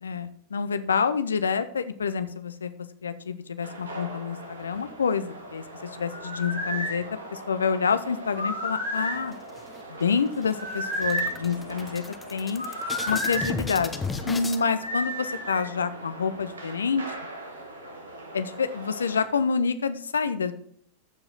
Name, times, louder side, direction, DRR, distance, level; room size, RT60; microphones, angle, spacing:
voice 1, 0.0-2.7 3.0-7.0 7.3-9.3 9.9-12.0 12.3-12.6 13.1-17.0 18.3-20.5, left 5 dB, 70° left, 12 dB, 0.7 m, -27 dB
sound 1, 3.6-19.3, right 1 dB, 75° right, 1.6 m, -42 dB
sound 2, 6.1-7.0 8.3-9.2 10.5-11.4 12.6-13.5 14.8-15.7, equal, 90° right, 2.1 m, -30 dB
sound 3, 9.3-10.0 10.4-10.5 10.8-14.6, left 4 dB, 10° left, 0.9 m, -35 dB
14.0 x 4.9 x 4.0 m, 0.62 s
figure-of-eight pair, 90°, 0 cm